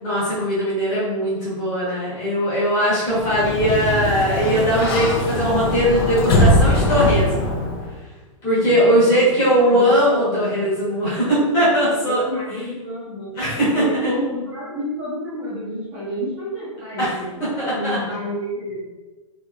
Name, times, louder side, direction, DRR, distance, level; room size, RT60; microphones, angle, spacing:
voice 1, 0.0-7.5 8.4-12.2 13.3-14.1 17.0-17.1 17.6-18.0, equal, 20° left, -9 dB, 1.0 m, -19 dB
Sliding door, 3.1-8.0, left 1 dB, 45° left, 0.4 m, -21 dB
voice 2, 8.6-10.6 12.0-13.4 13.7-18.8, equal, 20° right, -9 dB, 0.6 m, -29 dB
2.9 x 2.6 x 2.3 m, 1.2 s
hypercardioid pair, 175°, 18 cm